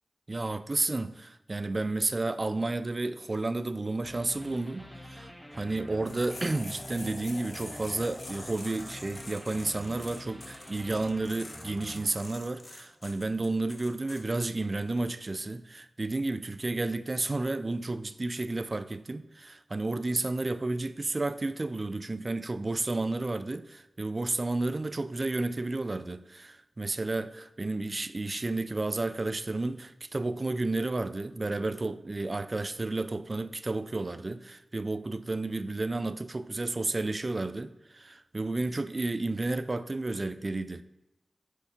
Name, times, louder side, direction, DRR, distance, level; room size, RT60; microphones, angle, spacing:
voice 1, 0.3-40.8, right 2 dB, 35° right, 0.4 m, -32 dB
sound 1, 4.0-13.1, left 1 dB, ahead, 0.7 m, -47 dB
sound 2, 6.1-14.2, left 2 dB, 45° left, 1.2 m, -45 dB
6.4 x 5.1 x 5.7 m
wide cardioid pair, 85°, 0 cm